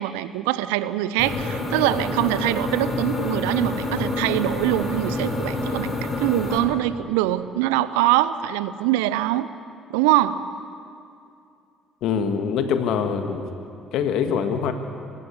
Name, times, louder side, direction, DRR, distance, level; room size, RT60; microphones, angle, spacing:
voice 1, 0.0-5.9 6.2-9.5 9.9-10.4, right 14 dB, 70° right, 15 dB, 0.7 m, -23 dB
sound 1, 1.2-6.6, left 2 dB, 35° left, 7.0 m, -27 dB
voice 2, 12.0-13.5 13.9-14.7, left 7 dB, 60° left, 7 dB, 1.7 m, -24 dB
24.5 x 14.5 x 9.6 m, 2.5 s
figure-of-eight pair, 50°, 0 cm